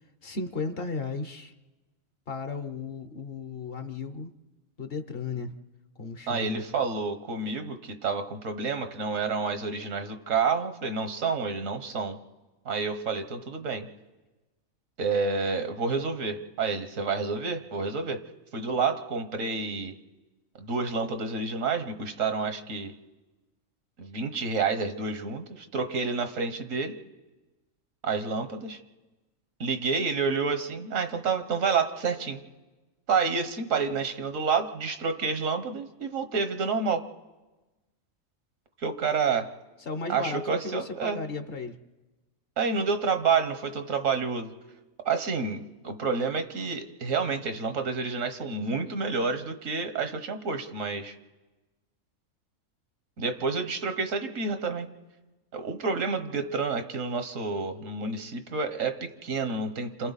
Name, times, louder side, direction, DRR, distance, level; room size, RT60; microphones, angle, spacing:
voice 1, 0.2-1.5 2.3-4.3 4.8-5.5 6.0-6.6 39.9-41.8, left 4 dB, 50° left, 9 dB, 1.1 m, -35 dB
voice 2, 6.3-12.2 12.6-13.9 15.0-18.2 18.5-19.9 20.6-22.9 24.0-26.9 28.0-28.8 29.6-32.4 33.1-37.0 38.8-39.5 40.1-41.2 42.6-44.5 45.0-51.1 53.2-54.9 55.5-60.1, right 5 dB, 80° right, 8 dB, 1.6 m, -29 dB
28.0 x 26.5 x 4.1 m, 1.2 s
omnidirectional pair, 1.3 m